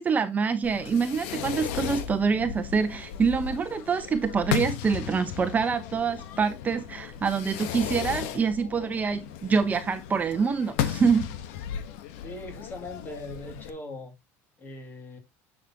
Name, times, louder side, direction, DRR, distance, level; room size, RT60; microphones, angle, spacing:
voice 1, 0.0-11.3, right 5 dB, 25° right, 1.0 m, -26 dB
Fireworks, 0.6-13.7, left 9 dB, 85° left, 1.1 m, -35 dB
voice 2, 12.2-14.2 14.6-15.2, left 1 dB, 30° left, 2.6 m, -40 dB
10.0 x 6.8 x 2.9 m
cardioid pair, 135°, 7 cm